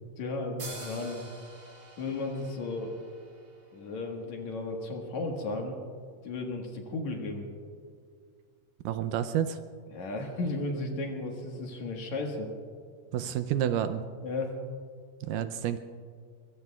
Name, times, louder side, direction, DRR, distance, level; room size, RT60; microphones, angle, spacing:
voice 1, 0.2-1.2 2.0-3.0 3.7-5.8 6.2-7.5 9.9-12.5 14.2-14.6, left 2 dB, 60° left, 1 dB, 2.6 m, -34 dB
sound 1, 0.6-4.1, right 2 dB, 35° right, 5.0 m, -47 dB
voice 2, 8.9-9.6 13.1-14.0 15.2-15.8, right 10 dB, 80° right, 10 dB, 2.1 m, -29 dB
23.0 x 22.5 x 2.3 m, 2.1 s
omnidirectional pair, 4.0 m